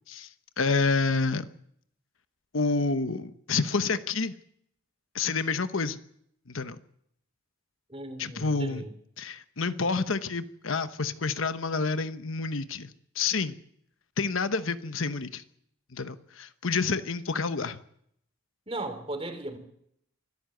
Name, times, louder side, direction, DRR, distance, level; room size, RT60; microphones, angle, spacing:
voice 1, 0.6-1.5 2.5-4.3 5.1-6.0 6.5-6.8 8.2-8.8 9.2-12.9 13.1-13.6 14.2-15.4 15.9-17.8, left 4 dB, 80° left, 11 dB, 1.1 m, -28 dB
voice 2, 7.9-8.9 18.7-19.6, right 2 dB, 25° right, 8 dB, 3.2 m, -36 dB
24.5 x 13.5 x 7.9 m, 0.71 s
head